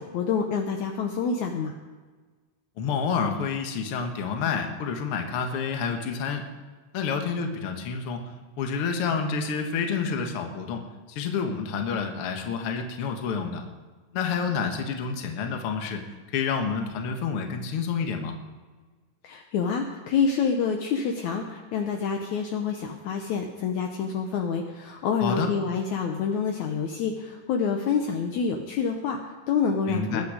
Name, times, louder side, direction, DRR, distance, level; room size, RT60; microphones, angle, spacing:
voice 1, 0.1-1.7 19.2-30.3, left 6 dB, 70° left, 3 dB, 2.1 m, -27 dB
voice 2, 2.8-6.4 6.9-13.6 14.1-16.0 16.3-18.4 25.2-25.5 29.9-30.3, left 5 dB, 50° left, 4 dB, 2.0 m, -29 dB
21.0 x 9.5 x 5.0 m, 1.4 s
omnidirectional pair, 3.9 m